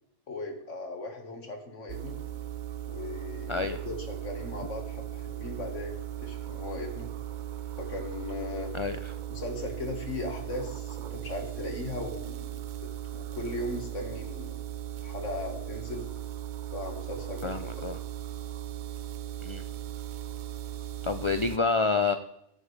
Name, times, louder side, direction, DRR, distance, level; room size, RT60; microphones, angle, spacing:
voice 1, 0.3-2.2 2.9-7.1 7.8-8.7 9.3-14.5 15.0-16.1 16.7-17.7, left 2 dB, 85° left, 3 dB, 2.1 m, -38 dB
sound 1, 1.9-21.6, right 12 dB, 60° right, 0.5 m, -38 dB
voice 2, 8.7-9.1 17.4-18.0 19.4-19.6 21.0-22.1, left 4 dB, 50° left, 9 dB, 0.3 m, -28 dB
12.5 x 11.0 x 3.3 m, 0.80 s
omnidirectional pair, 1.2 m